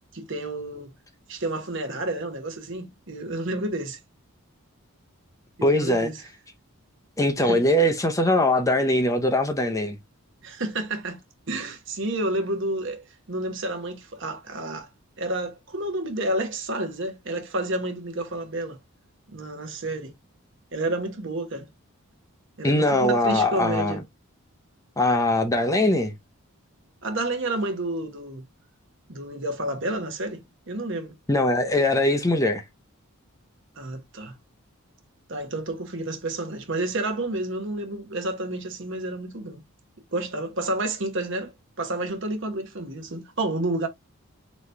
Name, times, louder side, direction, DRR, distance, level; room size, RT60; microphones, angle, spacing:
voice 1, 0.1-0.9 1.3-4.0 5.6-6.2 7.4-7.6 10.4-11.2 11.5-14.9 15.2-18.8 19.3-20.1 20.7-21.7 22.6-24.0 27.0-28.4 29.1-31.1 33.8-34.3 35.3-39.6 40.1-41.5 41.8-43.9, right 2 dB, 55° right, 1.1 m, -30 dB
voice 2, 5.6-6.1 7.2-10.0 22.6-24.0 25.0-26.1 31.3-32.6, left 1 dB, 15° left, 0.6 m, -21 dB
4.1 x 3.0 x 3.3 m
head